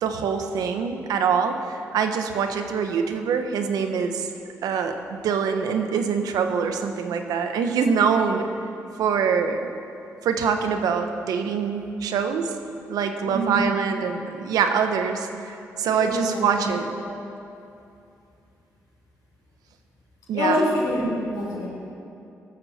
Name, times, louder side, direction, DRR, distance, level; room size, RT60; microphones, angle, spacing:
voice 1, 0.0-4.3 4.6-8.5 9.0-9.6 10.2-12.5 12.9-16.9 20.3-20.6, right 6 dB, 80° right, 6 dB, 1.2 m, -24 dB
voice 2, 13.2-13.6 16.0-16.6 16.8-17.1 20.3-21.7, left 1 dB, 85° left, -4 dB, 4.5 m, -26 dB
18.0 x 13.5 x 4.4 m, 2.6 s
supercardioid pair, 60°, 6 cm